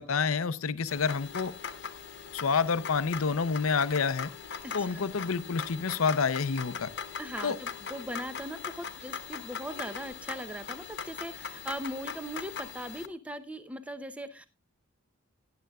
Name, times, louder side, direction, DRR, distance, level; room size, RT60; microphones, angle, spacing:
voice 1, 0.0-1.5 2.3-4.3 4.7-6.9 7.4-7.6, left 5 dB, 75° left, 0.6 m, -28 dB
sound 1, 0.9-13.1, left 6 dB, 50° left, 1.0 m, -41 dB
sound 2, 1.0-8.4, left 14 dB, 35° right, 1.3 m, -55 dB
voice 2, 4.6-5.1 7.2-14.5, equal, 5° right, 0.6 m, -39 dB
18.0 x 10.5 x 2.3 m
head